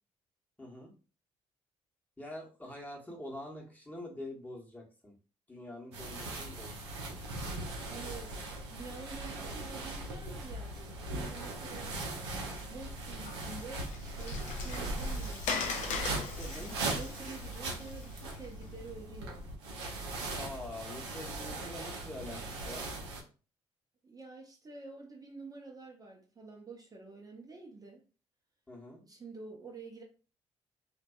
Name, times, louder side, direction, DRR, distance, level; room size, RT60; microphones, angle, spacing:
voice 1, 0.6-0.9 2.2-5.1 5.5-6.8 16.4-17.2 20.4-22.9 28.7-29.0, left 1 dB, 10° left, -1 dB, 1.0 m, -45 dB
sound 1, 5.9-23.2, right 2 dB, 85° right, 0.5 m, -39 dB
voice 2, 7.9-8.3 8.7-12.0 12.6-16.1 16.6-19.4 24.0-28.0 29.0-30.0, right 4 dB, 25° right, 0 dB, 0.6 m, -48 dB
Water, 13.2-18.6, left 5 dB, 60° left, 0.6 m, -40 dB
2.5 x 2.2 x 2.2 m, 0.35 s
hypercardioid pair, 50°, 14 cm